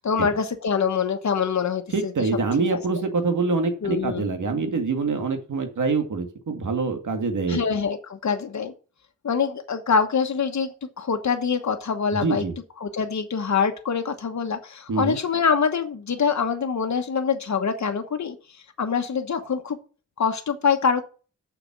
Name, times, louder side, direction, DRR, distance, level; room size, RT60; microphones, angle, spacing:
voice 1, 0.0-2.1 2.7-2.8 3.8-4.3 7.5-8.7 9.2-12.4 12.8-18.3 18.8-19.8 20.2-21.0, left 6 dB, 65° left, 6 dB, 1.2 m, -24 dB
voice 2, 1.9-7.6 12.2-12.6 14.9-15.2, right 4 dB, 80° right, 6 dB, 2.1 m, -25 dB
7.0 x 5.9 x 7.3 m, 0.36 s
wide cardioid pair, 95°, 30 cm